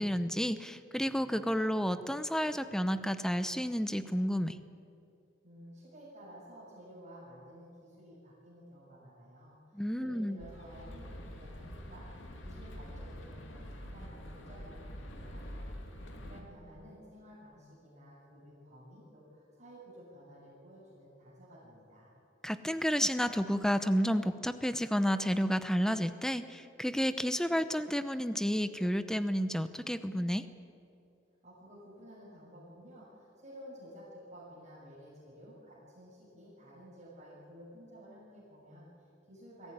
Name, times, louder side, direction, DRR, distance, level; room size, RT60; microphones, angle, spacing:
voice 1, 0.0-4.6 9.7-10.4 22.4-30.4, equal, 5° left, 11 dB, 0.8 m, -31 dB
voice 2, 5.4-12.1 12.4-15.6 16.2-22.1 31.4-39.7, equal, 40° right, -7 dB, 6.7 m, -53 dB
sound 1, 10.4-16.4, equal, 85° left, 2.8 m, -46 dB
23.0 x 15.0 x 9.7 m, 2.6 s
head